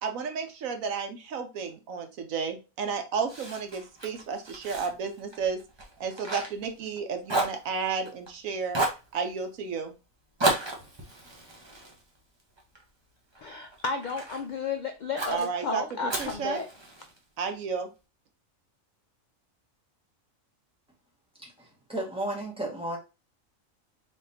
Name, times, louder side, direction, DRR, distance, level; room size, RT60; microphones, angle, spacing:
voice 1, 0.0-5.6 6.0-8.8 9.1-9.9 15.3-16.6 17.4-17.9, right 5 dB, 75° right, 1.2 m, -32 dB
Fire, 3.3-7.0 7.3-8.3 8.7-9.1 10.4-12.8 13.3-14.4 15.2-15.5 16.1-17.2, right 2 dB, 25° right, 0.8 m, -33 dB
voice 2, 13.4-16.7, left 4 dB, 70° left, 0.4 m, -33 dB
voice 3, 21.4-23.0, right 1 dB, 5° right, 1.5 m, -34 dB
4.1 x 3.6 x 2.7 m
omnidirectional pair, 1.4 m